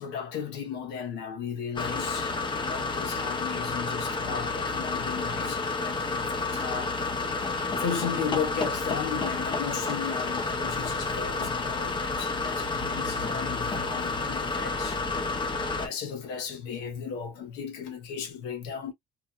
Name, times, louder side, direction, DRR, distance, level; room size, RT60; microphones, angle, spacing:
voice 1, 0.0-6.9 7.7-15.0 15.7-18.9, left 7 dB, 90° left, 0.9 m, -36 dB
sound 1, 1.8-15.9, left 3 dB, 30° left, 0.8 m, -30 dB
2.8 x 2.4 x 2.3 m
cardioid pair, 110°, 17 cm